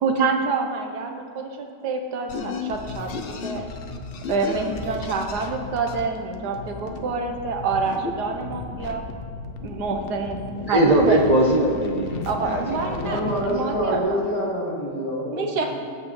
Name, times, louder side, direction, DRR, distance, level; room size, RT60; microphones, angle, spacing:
voice 1, 0.0-3.6 4.3-9.0 9.6-10.4 10.7-11.2 12.3-14.2 15.3-15.7, right 4 dB, 70° right, 4 dB, 1.5 m, -27 dB
sound 1, 2.3-14.0, left 4 dB, 80° left, 0.5 m, -34 dB
voice 2, 10.5-13.0, right 1 dB, 45° right, -2 dB, 0.5 m, -21 dB
voice 3, 12.8-15.7, equal, 15° left, -7 dB, 2.4 m, -27 dB
14.5 x 8.4 x 3.1 m, 2.2 s
omnidirectional pair, 1.8 m